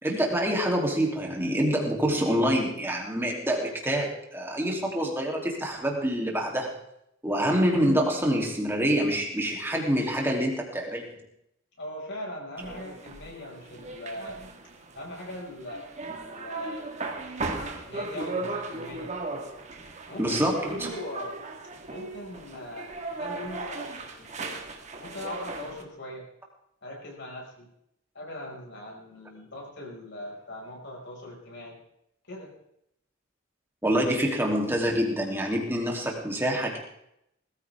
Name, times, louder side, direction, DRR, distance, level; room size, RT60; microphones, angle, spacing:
voice 1, 0.0-6.7 7.2-11.2 20.2-20.9 33.8-36.8, equal, 10° right, -1 dB, 3.1 m, -26 dB
voice 2, 11.8-14.4 15.0-16.9 17.8-19.1 20.1-21.3 21.9-24.6 25.0-26.3 26.8-27.7 28.1-31.8 32.3-32.5, left 1 dB, 60° left, -1 dB, 5.8 m, -40 dB
sound 1, 12.6-25.8, right 3 dB, 35° right, 1.8 m, -37 dB
20.0 x 14.5 x 3.6 m, 0.77 s
head